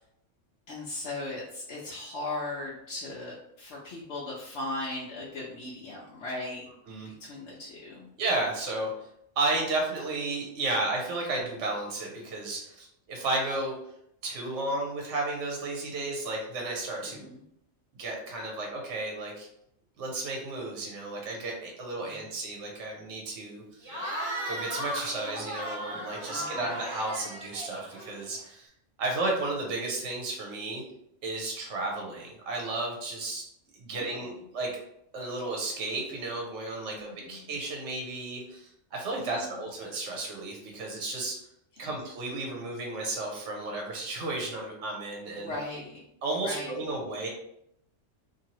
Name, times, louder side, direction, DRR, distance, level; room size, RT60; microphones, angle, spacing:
voice 1, 0.7-6.6 7.2-8.1 17.0-17.4 22.0-22.2 26.3-26.6 33.9-34.3 36.9-37.4 39.2-39.5 41.8-41.9 45.4-46.0 46.4-46.8, left 2 dB, 70° left, -5 dB, 0.9 m, -38 dB
voice 2, 8.2-9.1 9.4-13.7 14.2-17.3 18.0-19.5 20.0-23.9 24.4-28.7 29.0-30.8 31.2-33.4 33.7-34.7 35.1-41.4 41.8-45.5 46.2-47.3, right 2 dB, 70° right, 0 dB, 1.0 m, -33 dB
Cheering / Crowd, 23.8-28.4, equal, 40° right, 1.0 m, -36 dB
2.7 x 2.6 x 2.9 m, 0.76 s
omnidirectional pair, 1.3 m